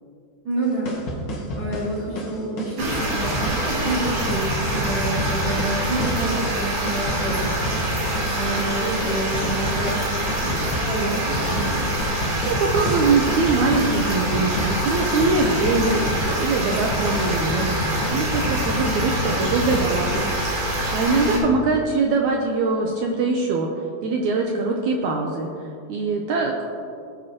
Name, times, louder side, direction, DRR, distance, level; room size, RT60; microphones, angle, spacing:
voice 1, 0.4-0.9 1.5-7.8 8.3-11.8 21.3-21.6, right 2 dB, 35° right, -9 dB, 3.3 m, -28 dB
sound 1, 0.6-20.4, equal, 50° left, 1.6 m, -29 dB
sound 2, 2.8-21.4, equal, 50° right, 2.8 m, -25 dB
voice 2, 12.4-16.0 16.4-20.2 20.9-23.7 24.0-25.5 25.9-26.7, right 3 dB, 85° right, 1 dB, 1.7 m, -22 dB
19.5 x 8.0 x 3.0 m, 2.4 s
omnidirectional pair, 4.4 m